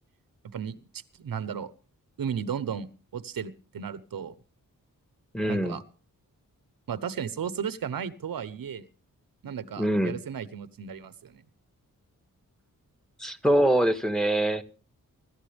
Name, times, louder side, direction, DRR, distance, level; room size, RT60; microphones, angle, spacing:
voice 1, 0.4-0.8 1.2-1.7 2.2-4.4 5.5-5.8 6.9-8.8 9.4-11.4, right 7 dB, 90° right, 1.1 m, -34 dB
voice 2, 5.3-5.8 9.8-10.2 13.2-14.6, right 1 dB, ahead, 1.5 m, -24 dB
24.5 x 13.0 x 3.5 m
wide cardioid pair, 115°, 34 cm